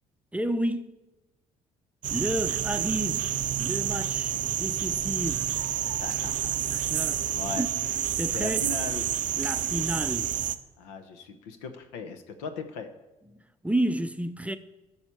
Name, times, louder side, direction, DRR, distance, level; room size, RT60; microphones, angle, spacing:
voice 1, 0.3-1.0 2.1-5.5 6.7-7.3 7.6-7.7 8.2-8.7 9.4-10.3 13.6-14.6, right 1 dB, 10° right, 0.6 m, -31 dB
sound 1, 2.0-10.6, right 10 dB, 50° right, 0.5 m, -29 dB
voice 2, 6.0-6.6 7.3-7.7 8.3-9.0 10.8-12.9, left 5 dB, 80° left, 0.8 m, -38 dB
12.5 x 5.6 x 4.3 m
hypercardioid pair, 55°, 17 cm